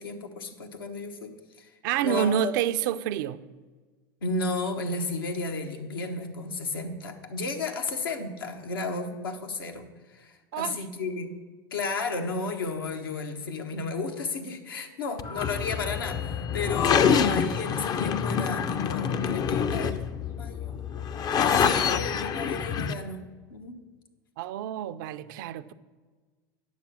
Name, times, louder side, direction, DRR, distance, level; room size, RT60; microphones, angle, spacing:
voice 1, 0.0-1.7 2.0-2.5 4.2-11.3 11.7-20.0 20.3-23.8, left 3 dB, 80° left, 1.2 m, -33 dB
voice 2, 1.8-3.4 10.5-10.8 24.4-25.7, right 10 dB, 60° right, 0.5 m, -28 dB
sound 1, 15.2-22.9, left 7 dB, 35° left, 0.5 m, -26 dB
9.3 x 7.0 x 6.2 m
hypercardioid pair, 90°, 12 cm